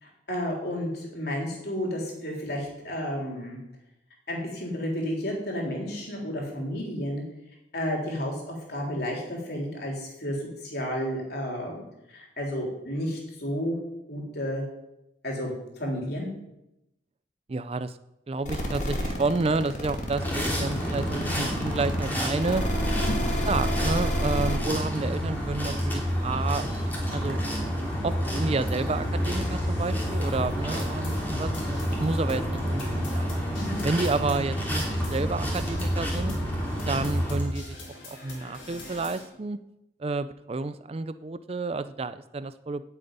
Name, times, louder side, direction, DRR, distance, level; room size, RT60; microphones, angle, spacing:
voice 1, 0.0-3.6 4.3-7.2 7.7-11.8 12.1-13.8 14.1-14.6 15.2-16.3 22.9-23.2 33.6-33.8, equal, 60° left, -1 dB, 3.7 m, -32 dB
voice 2, 17.5-18.0 18.3-22.6 23.5-26.7 27.1-27.4 28.0-33.3 33.8-34.8 35.1-36.3 36.9-37.8 38.0-39.6 40.0-42.8, right 3 dB, 30° right, 13 dB, 0.4 m, -30 dB
sound 1, 18.5-24.6, equal, 40° left, 2.4 m, -29 dB
sound 2, 20.1-37.4, equal, 10° left, 2.9 m, -29 dB
sound 3, 24.9-39.3, left 2 dB, 85° left, 4.4 m, -47 dB
9.0 x 8.0 x 9.2 m, 0.89 s
head